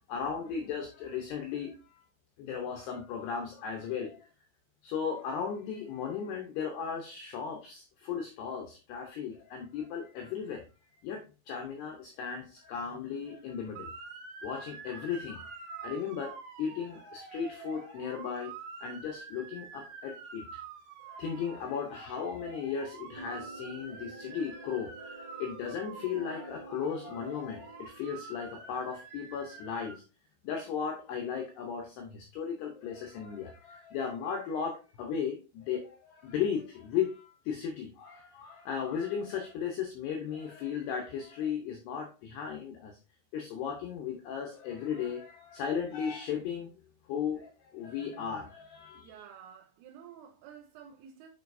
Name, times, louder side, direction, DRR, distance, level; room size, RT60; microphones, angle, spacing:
voice 1, 0.1-2.0 2.4-4.3 4.8-10.6 11.0-13.9 14.4-18.5 18.8-20.6 21.1-30.0 30.4-43.0 43.3-46.7 47.1-49.1, left 7 dB, 85° left, 2.3 m, -36 dB
Motor vehicle (road) / Siren, 13.8-30.0, right 5 dB, 65° right, 2.8 m, -47 dB
sound 1, 23.1-28.0, right 3 dB, 45° right, 1.7 m, -48 dB
voice 2, 48.9-51.3, right 8 dB, 80° right, 3.2 m, -51 dB
8.2 x 4.7 x 2.6 m
omnidirectional pair, 5.9 m